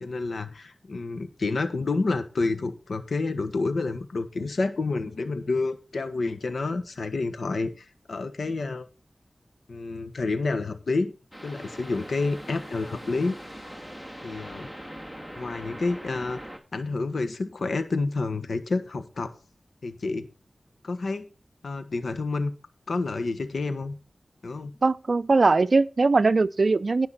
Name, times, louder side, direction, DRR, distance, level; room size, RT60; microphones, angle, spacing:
voice 1, 0.0-8.8 9.7-11.1 11.4-13.6 14.2-14.7 15.4-16.4 16.7-19.3 19.8-20.3 20.8-21.2 21.6-22.5 22.9-24.0 24.4-24.7, left 3 dB, 80° left, 1.4 m, -29 dB
sound 1, 11.3-16.6, equal, 10° left, 2.7 m, -41 dB
voice 2, 24.8-27.1, right 3 dB, 65° right, 0.5 m, -21 dB
17.5 x 5.9 x 4.1 m
cardioid pair, 45°, 0 cm